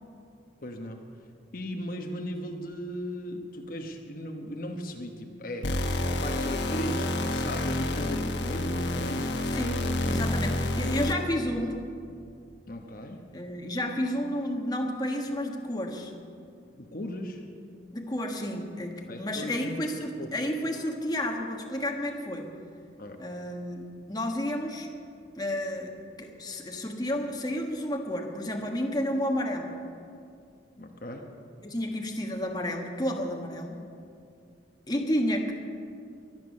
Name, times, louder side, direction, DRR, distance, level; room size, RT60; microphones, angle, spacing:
voice 1, 0.6-1.0 1.5-9.3 12.7-13.2 16.8-17.4 19.1-20.3 23.0-23.2 30.8-31.3, left 1 dB, 50° left, 3 dB, 1.1 m, -37 dB
sound 1, 5.6-11.4, left 1 dB, 75° left, 1.3 m, -29 dB
voice 2, 9.5-11.8 13.3-16.1 17.9-22.5 23.2-24.9 25.4-25.9 26.2-29.7 31.6-33.8 34.9-35.5, left 1 dB, 20° left, 2 dB, 1.4 m, -31 dB
23.5 x 9.1 x 6.5 m, 2.4 s
head